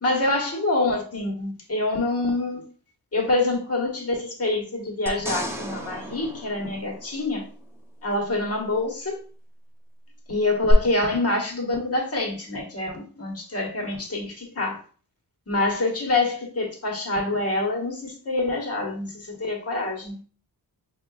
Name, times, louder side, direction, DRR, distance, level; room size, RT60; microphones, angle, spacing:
voice 1, 0.0-2.6 3.1-7.5 8.0-9.2 10.3-14.8 15.5-20.2, left 2 dB, 35° left, 1.4 m, -26 dB
sound 1, 5.1-7.6 10.7-10.8, equal, 5° right, 0.7 m, -34 dB
5.7 x 2.8 x 2.3 m
cardioid pair, 85°, 39 cm